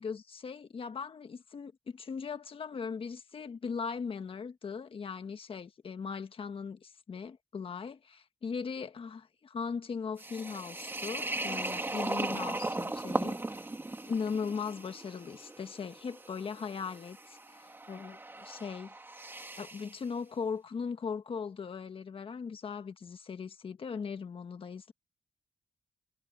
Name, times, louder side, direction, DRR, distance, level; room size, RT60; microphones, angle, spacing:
voice 1, 0.0-13.7 14.0-18.9 19.6-24.9, left 5 dB, 50° left, 1.5 m, -39 dB
sound 1, 10.2-20.0, right 2 dB, 15° right, 1.7 m, -38 dB
cardioid pair, 105°, 12 cm